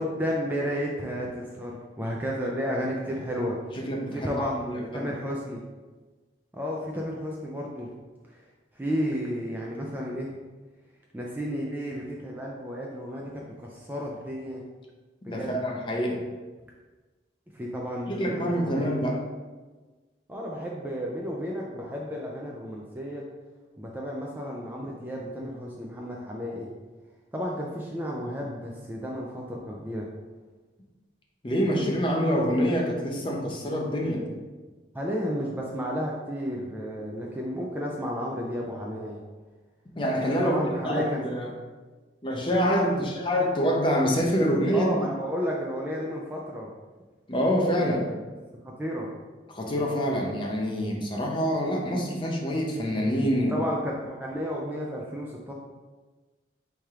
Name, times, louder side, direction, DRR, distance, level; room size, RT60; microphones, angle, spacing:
voice 1, 0.0-3.6 4.1-5.6 6.5-7.9 8.8-10.3 11.1-14.6 15.2-15.6 17.5-19.0 20.3-23.2 23.8-26.7 27.3-30.1 34.9-39.2 40.4-41.3 42.9-43.1 44.7-46.7 48.6-49.1 53.5-55.5, equal, 10° right, -2 dB, 0.4 m, -32 dB
voice 2, 3.7-5.1 15.3-16.2 18.1-19.2 31.4-34.3 40.0-41.5 42.2-44.9 47.3-48.1 49.5-53.5, equal, 25° left, -1 dB, 0.6 m, -26 dB
4.3 x 3.3 x 3.5 m, 1.3 s
head